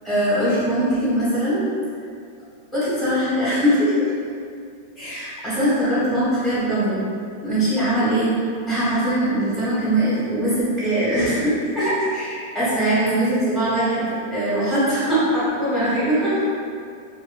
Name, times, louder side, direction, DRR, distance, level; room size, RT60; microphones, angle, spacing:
voice 1, 0.0-1.6 2.7-3.9 5.0-7.0 7.4-8.3 8.7-16.4, right 1 dB, 5° right, -14 dB, 1.3 m, -21 dB
2.5 x 2.4 x 2.3 m, 2.3 s
supercardioid pair, 155°, 0 cm